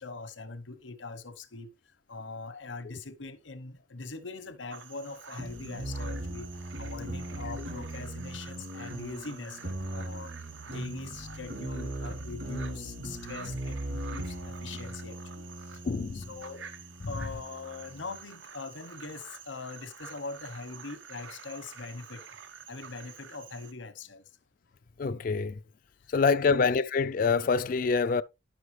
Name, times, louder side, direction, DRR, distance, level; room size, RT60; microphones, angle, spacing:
voice 1, 0.0-1.7 2.1-6.5 6.8-10.3 10.7-15.8 16.1-16.7 17.1-22.2 22.7-24.3 26.0-26.1 26.4-26.6, left 3 dB, 80° left, 1.0 m, -42 dB
sound 1, 4.7-23.7, right 6 dB, 85° right, 1.0 m, -49 dB
sound 2, 5.4-18.2, right 1 dB, 65° right, 2.6 m, -39 dB
voice 2, 15.8-16.2 17.0-17.1 25.0-25.6 26.1-28.2, left 5 dB, 45° left, 0.3 m, -26 dB
10.5 x 6.2 x 3.2 m
head